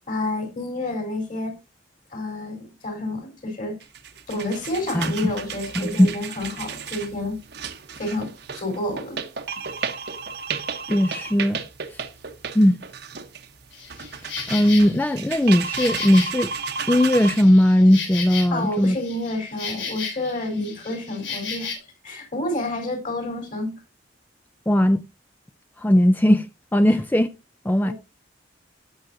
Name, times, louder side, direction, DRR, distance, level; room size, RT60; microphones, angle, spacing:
voice 1, 0.1-1.5 2.1-3.7 4.3-7.4 8.0-9.2 18.5-21.7 22.0-23.8 27.8-27.9, left 1 dB, 45° left, 3.9 m, -29 dB
sound 1, 3.8-17.4, right 5 dB, 60° right, 1.0 m, -33 dB
voice 2, 4.9-5.3 5.7-6.1 10.9-11.6 11.9-12.0 12.5-12.8 14.5-16.5 16.9-19.0 20.6-20.7 24.7-25.0 25.8-26.5 26.7-27.3 27.6-27.9, equal, 10° left, 0.4 m, -18 dB
Insect, 13.7-21.7, left 5 dB, 75° left, 3.8 m, -35 dB
15.0 x 6.4 x 2.6 m
head